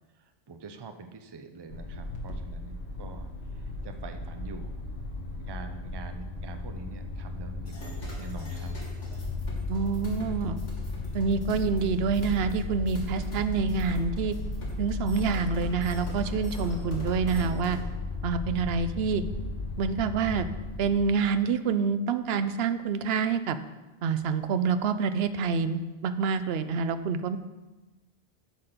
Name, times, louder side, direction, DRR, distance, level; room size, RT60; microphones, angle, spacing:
voice 1, 0.2-3.3 3.5-4.8 5.4-8.7, right 4 dB, 30° right, 7 dB, 0.4 m, -45 dB
sound 1, 1.7-20.9, left 3 dB, 65° left, 1.4 m, -35 dB
sound 2, 7.7-17.8, equal, 85° left, 2.5 m, -42 dB
voice 2, 9.7-10.6 11.1-14.4 14.8-17.8 18.2-19.2 19.8-20.5 20.8-23.6 24.0-27.4, right 5 dB, 65° right, 11 dB, 0.8 m, -27 dB
8.3 x 5.1 x 5.9 m, 1.1 s
omnidirectional pair, 1.2 m